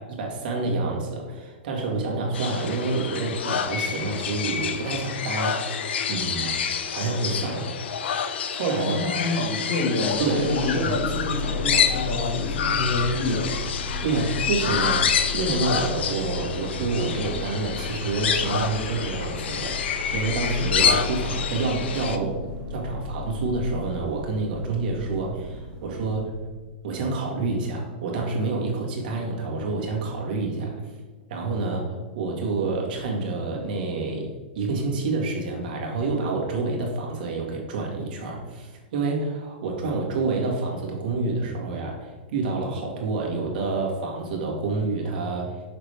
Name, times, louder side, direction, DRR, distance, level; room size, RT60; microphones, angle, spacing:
voice 1, 0.0-5.6 6.1-6.6 6.9-7.7 8.5-9.3 10.2-10.9 14.0-22.4 22.7-26.3 26.8-30.8 31.3-45.6, right 3 dB, 55° right, -1 dB, 1.7 m, -28 dB
sound 1, 2.3-22.2, left 7 dB, 80° left, 0.6 m, -28 dB
voice 2, 8.8-13.6, left 1 dB, 45° left, 1 dB, 1.4 m, -27 dB
sound 2, 10.0-26.6, left 3 dB, 5° left, 1.4 m, -35 dB
6.1 x 5.9 x 3.4 m, 1.3 s
supercardioid pair, 170°, 6 cm